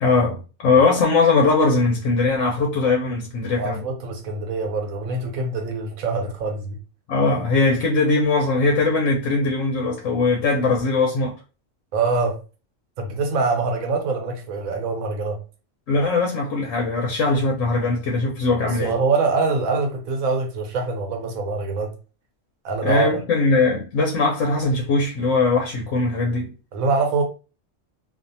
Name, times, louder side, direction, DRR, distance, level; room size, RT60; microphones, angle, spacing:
voice 1, 0.0-3.8 7.1-11.4 15.9-19.0 22.8-26.5, left 3 dB, 75° left, 1.0 m, -20 dB
voice 2, 3.6-6.8 11.9-12.4 13.0-15.4 18.7-21.9 22.6-23.2 26.7-27.2, right 4 dB, 90° right, 1.1 m, -24 dB
2.5 x 2.4 x 2.6 m
omnidirectional pair, 1.4 m